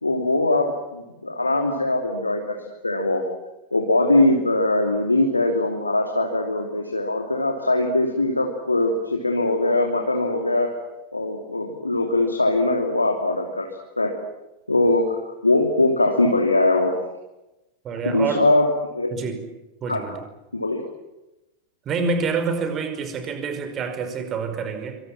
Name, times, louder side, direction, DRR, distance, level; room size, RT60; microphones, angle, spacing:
voice 1, 0.0-3.3 3.7-10.8 11.1-14.2 14.7-17.0 18.0-18.7 18.9-19.1 19.9-20.1 20.5-20.8, left 2 dB, 80° left, 3 dB, 2.9 m, -21 dB
voice 2, 17.8-18.5 19.1-19.4 19.8-20.2 21.9-25.0, right 5 dB, 30° right, 8 dB, 5.3 m, -27 dB
27.0 x 25.0 x 7.5 m, 0.97 s
figure-of-eight pair, 90°, 0 cm